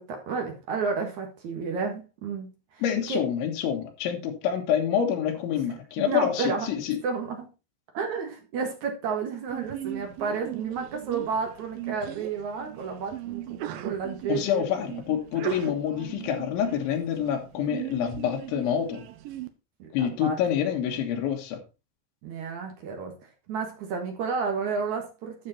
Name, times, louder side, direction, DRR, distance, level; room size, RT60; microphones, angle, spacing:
voice 1, 0.0-2.5 3.1-3.2 6.1-6.7 7.0-7.5 7.9-14.6 19.8-20.4 22.2-23.1 23.5-25.5, right 5 dB, 55° right, 4 dB, 2.2 m, -31 dB
voice 2, 2.8-7.0 14.3-19.0 19.9-21.6, left 9 dB, 85° left, 3 dB, 3.9 m, -27 dB
Sneeze, 9.5-19.5, right 13 dB, 85° right, 2.0 m, -38 dB
9.5 x 6.7 x 4.2 m, 0.29 s
omnidirectional pair, 5.2 m